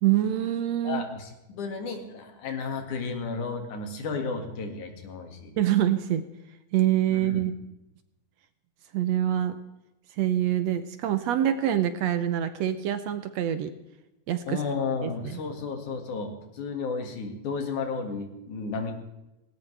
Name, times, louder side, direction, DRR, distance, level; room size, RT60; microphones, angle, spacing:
voice 1, 0.0-1.0 5.6-6.2 6.7-7.5 8.9-9.6 10.2-13.7 14.3-14.6 15.0-15.4, right 11 dB, 70° right, 10 dB, 1.7 m, -25 dB
voice 2, 0.8-5.5 7.1-7.4 14.5-18.9, left 4 dB, 75° left, 4 dB, 3.5 m, -33 dB
18.5 x 17.5 x 3.3 m, 0.97 s
omnidirectional pair, 3.5 m